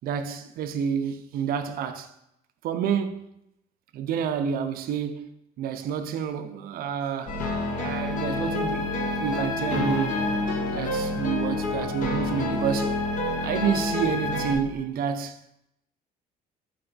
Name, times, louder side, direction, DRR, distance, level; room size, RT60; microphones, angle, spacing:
voice 1, 0.0-2.1 2.6-3.3 3.9-5.3 5.6-7.4 7.8-10.3 10.7-13.0 13.4-15.4, right 7 dB, 60° right, 0.4 m, -29 dB
sound 1, 7.3-14.6, left 2 dB, 50° left, 0.7 m, -28 dB
3.4 x 2.9 x 3.9 m
cardioid pair, 110°, 17 cm